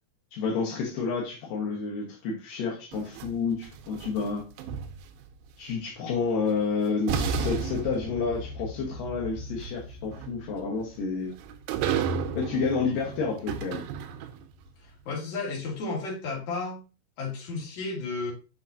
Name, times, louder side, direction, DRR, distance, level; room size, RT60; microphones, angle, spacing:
voice 1, 0.3-4.4 5.6-11.3 12.3-13.8, left 4 dB, 75° left, -3 dB, 2.0 m, -30 dB
sound 1, 2.9-5.3 6.5-6.6 7.1-14.6, right 5 dB, 90° right, 3.4 m, -33 dB
voice 2, 14.8-16.8 17.2-18.3, left 3 dB, 45° left, -3 dB, 2.7 m, -33 dB
7.3 x 5.8 x 2.7 m, 0.31 s
omnidirectional pair, 5.9 m